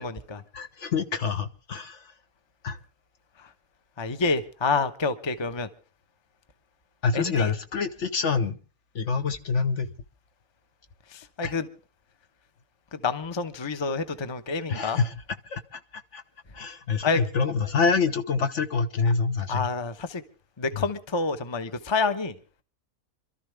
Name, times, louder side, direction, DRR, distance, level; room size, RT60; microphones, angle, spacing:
voice 1, 0.0-0.4 3.4-3.5 4.0-5.7 7.1-7.5 11.1-11.7 12.9-15.0 17.0-17.2 19.5-20.2 20.6-22.4, left 4 dB, 20° left, 0.8 m, -28 dB
voice 2, 0.5-2.1 2.6-2.8 7.0-8.6 8.9-9.9 11.4-11.5 14.7-15.1 15.5-16.2 16.5-19.7 20.7-20.8, left 5 dB, 55° left, 1.2 m, -26 dB
27.0 x 13.0 x 3.4 m
omnidirectional pair, 1.5 m